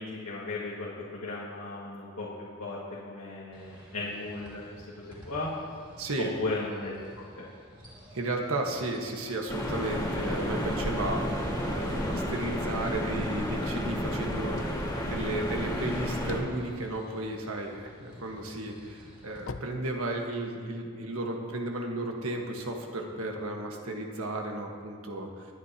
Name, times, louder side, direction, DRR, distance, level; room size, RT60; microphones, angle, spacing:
voice 1, 0.0-2.8 3.0-5.5 6.4-6.9 7.4-7.5, left 2 dB, 85° left, -6 dB, 2.0 m, -36 dB
sound 1, 3.5-19.4, equal, 20° right, 2.9 m, -53 dB
voice 2, 6.0-6.3 8.1-14.8 15.1-25.5, right 2 dB, 75° right, 1 dB, 1.5 m, -34 dB
sound 2, 9.5-16.4, equal, 15° left, 2.0 m, -31 dB
sound 3, 16.2-17.9 18.4-20.6, left 4 dB, 60° left, 0.5 m, -44 dB
22.5 x 9.8 x 2.9 m, 2.3 s
head